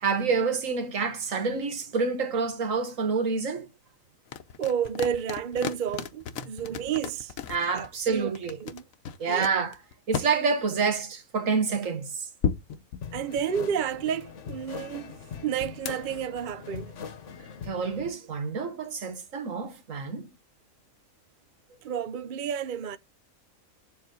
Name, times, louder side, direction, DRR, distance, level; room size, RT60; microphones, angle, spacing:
voice 1, 0.0-3.7 7.5-8.6 9.2-9.8 10.1-12.3 17.6-20.3, right 5 dB, 70° right, 1.7 m, -28 dB
sound 1, 4.3-7.9 8.3-10.3 12.4-13.8 15.9-16.0, left 7 dB, 85° left, 1.2 m, -33 dB
voice 2, 4.6-7.3 7.7-8.8 9.3-9.5 13.1-15.2 15.4-16.9 21.8-23.0, right 8 dB, 50° right, 0.7 m, -31 dB
sound 2, 13.0-18.1, left 6 dB, 65° left, 1.3 m, -42 dB
8.5 x 7.3 x 3.8 m
omnidirectional pair, 1.4 m